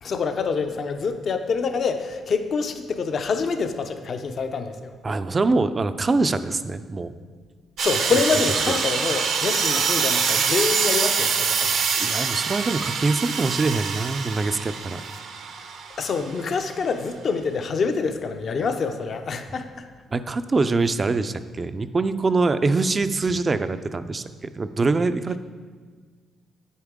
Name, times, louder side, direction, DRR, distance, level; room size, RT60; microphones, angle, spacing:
voice 1, 0.0-4.9 7.8-11.8 16.0-19.8, left 5 dB, 55° left, 7 dB, 0.7 m, -26 dB
voice 2, 5.0-7.2 11.9-15.0 20.1-25.4, right 3 dB, 30° right, 11 dB, 0.4 m, -24 dB
sound 1, 7.8-16.4, right 6 dB, 70° right, 0.8 m, -25 dB
9.3 x 8.2 x 3.7 m, 1.5 s
cardioid pair, 90°, 0 cm